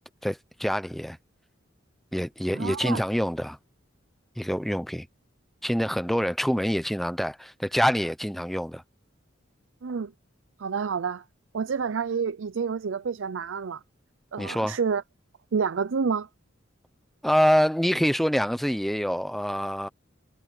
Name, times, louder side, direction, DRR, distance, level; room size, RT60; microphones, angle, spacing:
voice 1, 0.2-1.2 2.1-3.6 4.4-5.1 5.6-8.8 14.4-14.8 17.2-19.9, equal, ahead, 0.8 m, -26 dB
voice 2, 2.5-3.0 9.8-10.1 10.6-11.2 11.5-13.8 14.3-15.0 15.5-16.3, right 5 dB, 80° right, 0.5 m, -28 dB
head